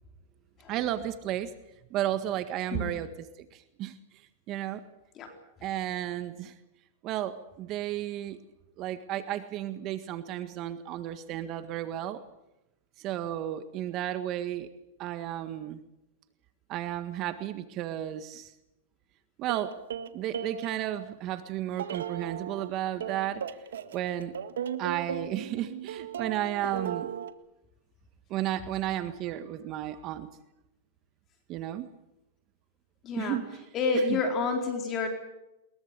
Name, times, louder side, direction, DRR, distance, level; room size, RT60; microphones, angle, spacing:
voice 1, 0.7-1.5 1.9-3.1 3.5-3.9 4.5-4.8 5.6-6.5 7.0-8.4 8.8-12.2 13.0-14.7 15.0-15.8 16.7-18.5 19.4-19.7 20.1-23.4 23.9-24.3 24.8-27.1 28.3-30.3 31.5-31.9 33.2-33.7 33.9-34.2, right 12 dB, 40° right, 10 dB, 1.7 m, -33 dB
sound 1, 19.5-21.1 21.7-22.7 23.0-27.3, right 8 dB, 85° right, 1.8 m, -36 dB
voice 2, 33.0-33.4 33.7-35.1, left 4 dB, 30° left, 4 dB, 4.1 m, -29 dB
22.5 x 22.0 x 8.2 m, 0.91 s
hypercardioid pair, 130°, 0 cm